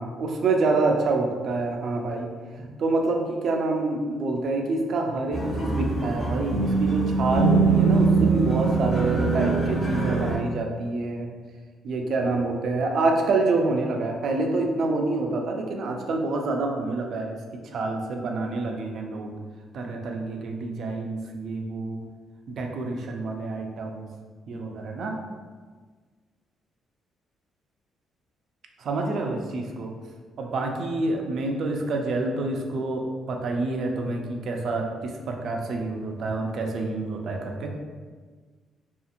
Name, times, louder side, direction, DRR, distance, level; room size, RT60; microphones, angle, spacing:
voice 1, 0.0-2.3 2.6-11.3 11.8-17.4 17.7-19.3 19.7-22.0 22.5-24.0 24.5-25.2 28.8-29.9 30.4-37.7, right 3 dB, 65° right, 2 dB, 0.4 m, -27 dB
sound 1, 5.3-10.3, right 4 dB, 35° left, 1.0 m, -22 dB
2.8 x 2.4 x 2.5 m, 1.5 s
cardioid pair, 90°, 0 cm